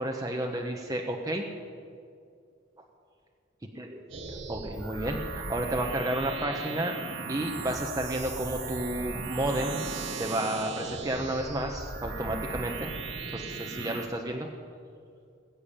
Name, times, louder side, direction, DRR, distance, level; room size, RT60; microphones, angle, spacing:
voice 1, 0.0-1.5 3.8-4.0 4.5-7.0 7.3-9.9 10.1-12.9 13.3-14.5, right 1 dB, 20° right, 1 dB, 1.0 m, -31 dB
sound 1, 4.1-14.1, right 4 dB, 75° right, 1.8 m, -37 dB
20.0 x 7.1 x 8.5 m, 2.4 s
head